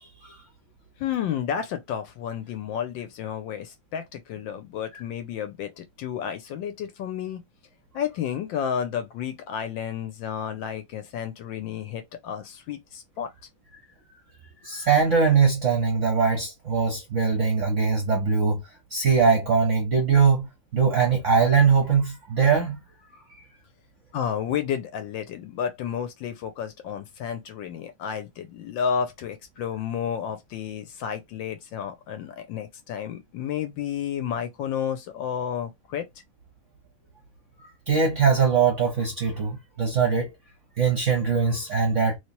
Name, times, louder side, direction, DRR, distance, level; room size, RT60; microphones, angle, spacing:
voice 1, 1.0-7.4 7.9-13.3 24.1-36.1, left 8 dB, 75° left, 1.2 m, -31 dB
voice 2, 14.6-18.6 18.9-20.5 20.7-22.8 37.9-40.3 40.8-42.2, right 5 dB, 55° right, 0.8 m, -21 dB
3.2 x 3.0 x 2.8 m
omnidirectional pair, 2.3 m